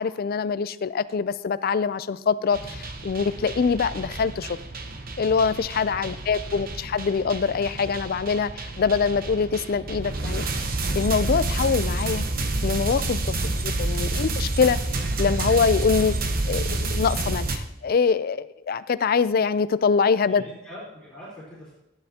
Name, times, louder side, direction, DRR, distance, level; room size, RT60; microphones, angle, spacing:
voice 1, 0.0-4.6 5.2-10.4 10.9-12.2 12.6-13.4 13.6-14.8 15.2-16.1 16.4-20.4, left 5 dB, 45° left, 16 dB, 0.4 m, -24 dB
sound 1, 2.5-17.6, right 2 dB, 45° right, 0.9 m, -29 dB
voice 2, 6.0-6.7 13.2-13.6 20.3-21.7, left 1 dB, 5° left, -10 dB, 3.5 m, -44 dB
14.5 x 9.9 x 2.8 m, 0.89 s
head